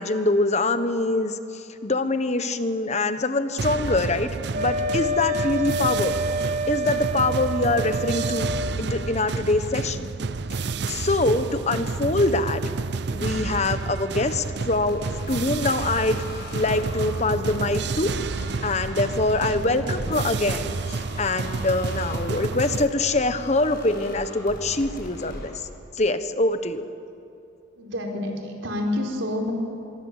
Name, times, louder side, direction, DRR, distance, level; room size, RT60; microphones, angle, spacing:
voice 1, 0.0-6.2 6.7-8.5 8.8-10.1 10.5-10.6 10.9-12.6 13.1-18.1 18.6-25.7 25.9-26.8, left 2 dB, 35° left, 10 dB, 1.2 m, -24 dB
sound 1, 3.6-22.9, right 4 dB, 60° right, 0.6 m, -30 dB
Wind instrument woodwind instrument, 4.5-8.8, right 1 dB, 40° right, 0.9 m, -28 dB
sound 2, 14.8-25.5, equal, 55° left, 6.5 m, -39 dB
voice 2, 27.8-29.5, left 1 dB, 85° right, 1 dB, 4.3 m, -29 dB
25.5 x 22.5 x 8.3 m, 2.7 s
head